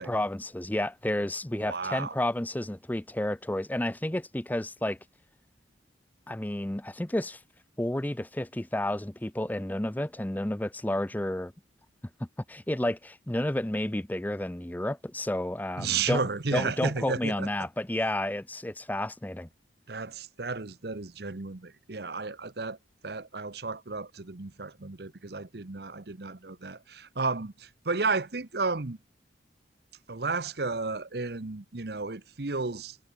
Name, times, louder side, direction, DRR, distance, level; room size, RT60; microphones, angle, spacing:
voice 1, 0.0-5.0 6.3-7.4 7.8-11.5 12.2-16.2 16.5-19.5, left 1 dB, 10° left, 0.6 m, -31 dB
voice 2, 1.6-2.1 15.8-17.5 19.9-22.8 23.0-29.0 30.1-33.0, right 4 dB, 60° right, 1.0 m, -33 dB
head